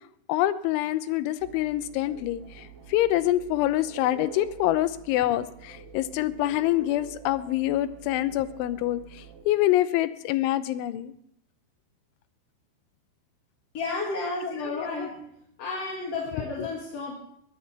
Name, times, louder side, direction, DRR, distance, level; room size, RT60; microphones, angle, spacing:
voice 1, 0.3-11.1 14.6-15.1, left 14 dB, 85° left, 13 dB, 3.2 m, -26 dB
sound 1, 1.4-9.5, right 5 dB, 80° right, 4.8 m, -47 dB
voice 2, 13.7-15.2 15.6-17.1, left 3 dB, 40° left, -3 dB, 2.7 m, -32 dB
21.5 x 15.5 x 3.4 m, 0.71 s
omnidirectional pair, 5.3 m